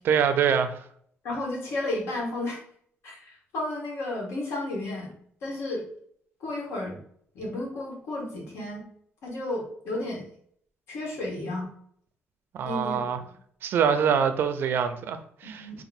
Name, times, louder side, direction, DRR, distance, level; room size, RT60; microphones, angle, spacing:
voice 1, 0.0-0.8 12.5-13.2 13.6-15.8, right 7 dB, 55° right, 0.4 m, -25 dB
voice 2, 1.2-2.6 3.0-5.1 5.4-5.8 6.4-7.0 7.3-8.8 9.2-10.3 10.9-11.7 12.6-13.0 15.4-15.8, left 2 dB, 80° left, 1.7 m, -32 dB
4.1 x 2.4 x 4.2 m
cardioid pair, 180°, 4 cm